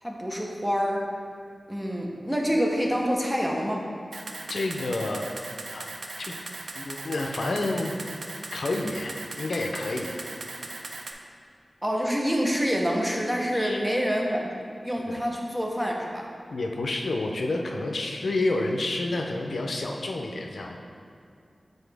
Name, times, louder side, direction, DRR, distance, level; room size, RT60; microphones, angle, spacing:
voice 1, 0.0-1.0 1.7-3.8 11.8-14.5 14.8-16.3, equal, 10° right, -1 dB, 0.8 m, -27 dB
Camera, 4.1-11.1, right 3 dB, 85° right, 0.4 m, -38 dB
voice 2, 4.5-5.3 5.7-5.9 6.2-6.3 6.8-7.9 8.5-10.2 13.5-13.8 15.0-15.2 16.5-20.8, left 2 dB, 80° left, 2 dB, 0.5 m, -29 dB
7.1 x 3.9 x 3.4 m, 2.3 s
wide cardioid pair, 70°, 0 cm